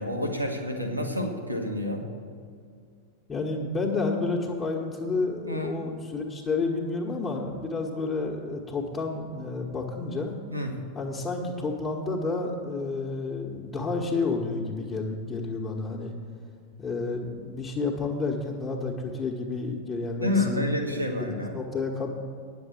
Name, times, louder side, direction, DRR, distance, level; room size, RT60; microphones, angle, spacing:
voice 1, 0.0-2.0 5.4-5.8 10.5-10.8 20.2-21.5, left 1 dB, 85° right, 2 dB, 1.4 m, -29 dB
voice 2, 3.3-10.3 10.9-16.1 16.8-22.1, left 3 dB, 20° left, -4 dB, 1.3 m, -30 dB
9.8 x 7.2 x 8.4 m, 2.2 s
figure-of-eight pair, 90°, 0 cm